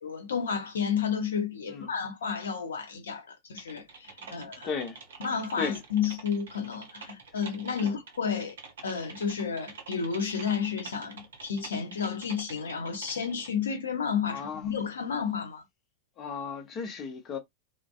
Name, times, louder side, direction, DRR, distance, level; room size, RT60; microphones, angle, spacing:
voice 1, 0.0-4.7 5.2-8.6 8.8-15.6, left 6 dB, 65° left, 0.8 m, -31 dB
Typing, 3.6-13.5, right 5 dB, 65° right, 0.7 m, -47 dB
voice 2, 4.2-5.2 5.5-5.8 7.8-7.9 14.3-14.7 16.2-17.4, left 5 dB, 30° left, 0.7 m, -36 dB
2.5 x 2.1 x 2.4 m
figure-of-eight pair, 90°, 0 cm